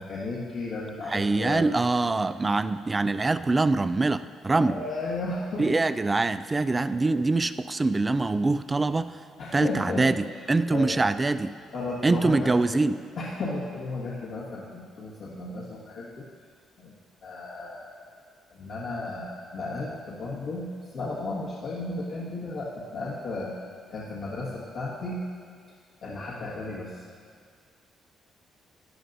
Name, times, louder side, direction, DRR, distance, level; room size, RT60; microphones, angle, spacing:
voice 1, 0.0-1.7 2.4-2.5 4.6-5.7 6.7-6.8 9.4-10.1 10.7-11.0 11.7-12.8 13.2-16.3 16.8-16.9 17.2-18.1 18.5-23.5 23.9-25.2 26.0-27.0, left 2 dB, 70° left, -7 dB, 1.6 m, -34 dB
voice 2, 1.1-4.8 5.6-9.2 9.5-11.5 12.0-13.0, right 3 dB, 20° right, 13 dB, 0.3 m, -24 dB
12.5 x 9.9 x 2.6 m, 2.1 s
cardioid pair, 100°, 0 cm